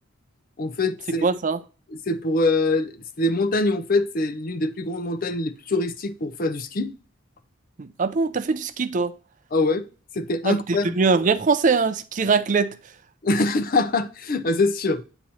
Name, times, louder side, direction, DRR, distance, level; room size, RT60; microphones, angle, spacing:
voice 1, 0.6-1.3 2.1-6.9 9.5-9.9 10.1-10.9 13.2-15.0, left 2 dB, 45° left, 0.5 m, -24 dB
voice 2, 1.2-1.6 7.8-9.1 10.4-12.7, right 4 dB, 35° right, 0.4 m, -22 dB
8.7 x 3.0 x 4.1 m
head